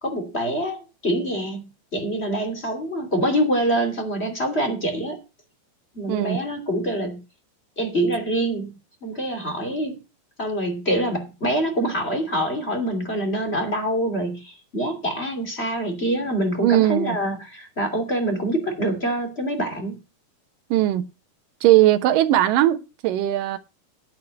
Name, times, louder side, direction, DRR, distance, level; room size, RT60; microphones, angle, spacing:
voice 1, 0.0-5.2 5.9-7.2 7.8-8.7 9.0-10.0 10.4-20.0, right 1 dB, 20° left, 2.4 m, -25 dB
voice 2, 6.1-6.4 16.6-17.2 20.7-21.1 21.6-23.6, right 14 dB, 75° right, 2.6 m, -19 dB
10.5 x 5.6 x 8.2 m
omnidirectional pair, 4.2 m